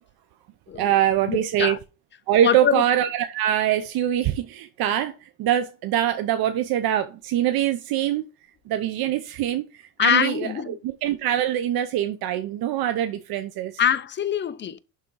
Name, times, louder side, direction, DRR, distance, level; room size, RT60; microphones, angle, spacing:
voice 1, 0.7-1.8 2.3-8.2 8.7-13.8, right 11 dB, 70° right, 0.9 m, -24 dB
voice 2, 1.3-1.8 2.4-2.8 10.0-10.8 13.8-14.8, left 8 dB, 30° left, 0.6 m, -24 dB
11.5 x 3.8 x 4.7 m
cardioid pair, 130°, 37 cm